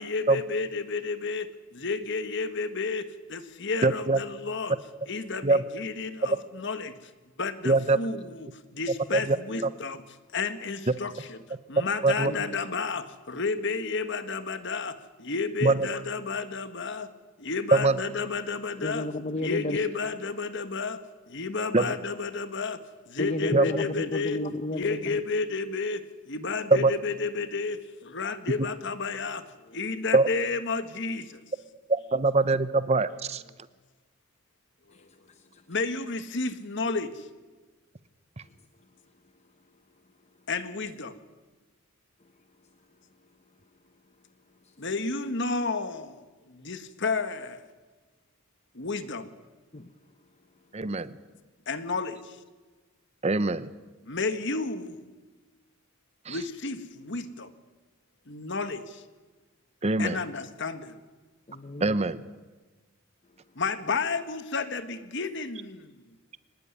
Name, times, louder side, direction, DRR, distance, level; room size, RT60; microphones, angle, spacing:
voice 1, 0.0-1.5 1.8-3.0 3.3-4.7 5.1-6.9 7.4-8.5 8.8-10.0 10.3-11.4 11.7-14.9 15.2-17.1 17.4-19.1 19.4-21.0 21.3-22.8 23.2-24.4 24.7-26.0 26.3-27.8 28.1-29.4 29.7-31.2 35.7-37.1 40.5-41.1 44.8-46.1 46.7-47.6 48.8-49.2 51.7-52.2 54.1-54.9 56.3-57.5 58.3-58.8 60.0-60.8 63.6-65.8, left 4 dB, 55° left, 1.7 m, -31 dB
voice 2, 3.8-4.2 5.4-5.6 7.6-8.0 9.1-9.4 9.6-9.7 12.0-12.3 15.6-15.9 17.7-18.0 21.7-21.9 23.5-23.6 26.7-26.9 30.1-30.3 31.9-33.4 50.7-51.2 53.2-53.7 56.3-56.4 59.8-60.2 61.8-62.2, right 3 dB, 30° right, 0.8 m, -23 dB
voice 3, 18.8-19.8 23.2-25.2 34.9-35.0 35.5-35.6 49.7-49.9 61.5-61.9, left 1 dB, 30° left, 0.9 m, -32 dB
23.5 x 19.5 x 9.8 m
head